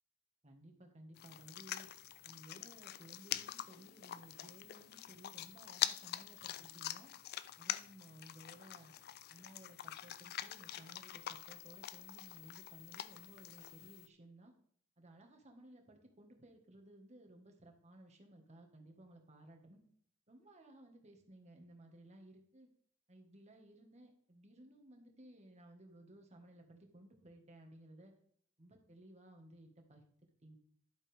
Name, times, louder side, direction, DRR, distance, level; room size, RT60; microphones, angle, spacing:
voice 1, 0.4-1.9 2.2-7.1 7.6-8.9 9.3-14.5 15.0-19.8 20.3-22.7 23.1-28.1 28.6-30.0 30.4-30.6, right 1 dB, 35° right, 3 dB, 1.6 m, -58 dB
sound 1, 1.2-14.1, left 12 dB, 50° left, 0.4 m, -45 dB
11.5 x 7.5 x 3.5 m, 0.62 s
head